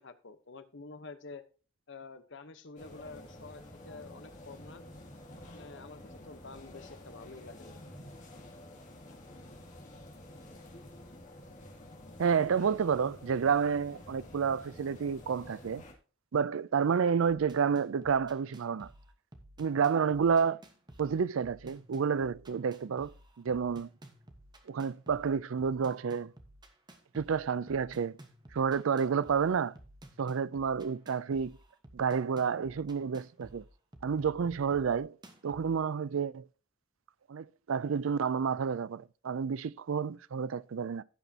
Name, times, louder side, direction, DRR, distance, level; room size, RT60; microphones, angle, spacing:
voice 1, 0.0-1.4 1.9-4.8 5.5-7.8, left 3 dB, 60° left, 1.0 m, -48 dB
sound 1, 2.8-15.9, left 1 dB, 40° left, 2.6 m, -50 dB
voice 2, 12.2-15.8 16.3-18.9 19.6-20.6 21.0-23.1 23.4-23.9 24.7-26.3 27.1-28.2 28.5-29.8 30.2-31.5 31.9-33.6 34.0-35.2 35.4-36.5 37.3-41.0, right 6 dB, 75° right, 0.4 m, -30 dB
sound 2, 17.3-35.8, right 1 dB, 20° right, 1.3 m, -54 dB
16.0 x 6.1 x 2.8 m
head